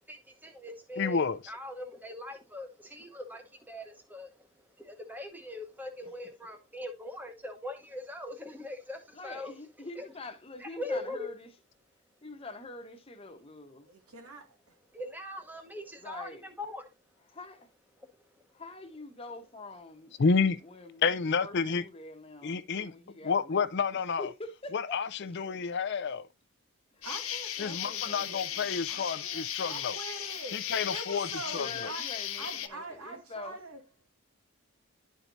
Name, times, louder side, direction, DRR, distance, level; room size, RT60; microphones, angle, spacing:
voice 1, 0.1-9.5 10.0-10.1 10.6-11.3 14.9-16.9 18.0-18.5, left 1 dB, 10° right, 0.9 m, -41 dB
voice 2, 1.0-1.4 20.2-20.6 21.0-21.8 22.4-22.9 23.2-24.3 24.7-26.3 27.6-29.9 30.5-31.9, left 5 dB, 50° left, 0.4 m, -30 dB
voice 3, 9.1-11.5 12.2-13.9 16.0-16.5 17.3-17.7 18.5-20.1 20.6-23.6 23.9-25.0 25.5-25.6 26.9-27.1 27.6-28.7 31.5-33.6, left 2 dB, 25° left, 1.0 m, -45 dB
voice 4, 13.9-14.8 27.0-32.0 32.4-33.8, right 2 dB, 90° right, 2.0 m, -44 dB
Insect, 27.0-32.7, left 11 dB, 70° left, 0.8 m, -36 dB
11.0 x 4.6 x 2.6 m
head